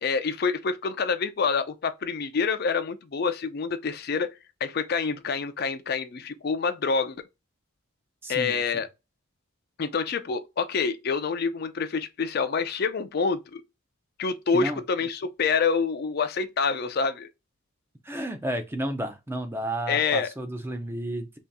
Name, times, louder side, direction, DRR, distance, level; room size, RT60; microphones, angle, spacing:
voice 1, 0.0-4.3 4.6-7.3 8.3-8.9 9.8-13.6 14.2-17.3 19.9-20.3, left 5 dB, 45° left, 0.4 m, -27 dB
voice 2, 8.2-8.6 14.5-14.8 18.0-21.4, right 1 dB, 10° right, 0.5 m, -32 dB
3.0 x 2.8 x 3.4 m
head